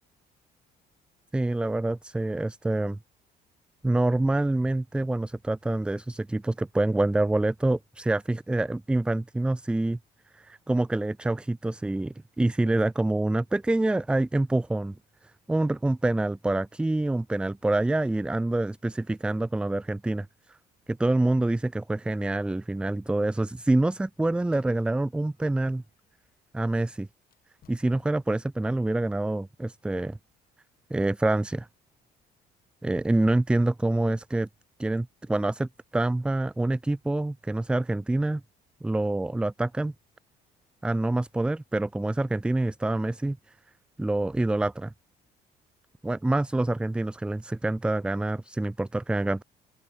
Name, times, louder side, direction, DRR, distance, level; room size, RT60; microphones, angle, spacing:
voice 1, 1.3-3.0 3.8-10.0 10.3-14.9 15.5-20.6 20.9-25.8 26.5-27.1 27.7-30.2 30.9-31.7 32.8-34.5 34.8-38.4 38.8-39.9 40.8-43.4 44.0-44.9 46.0-49.4, right 2 dB, 5° right, 0.3 m, -26 dB
Squeak, 23.4-26.4 27.2-28.5, left 11 dB, 60° left, 4.6 m, -63 dB
open air
cardioid pair, 110°, 17 cm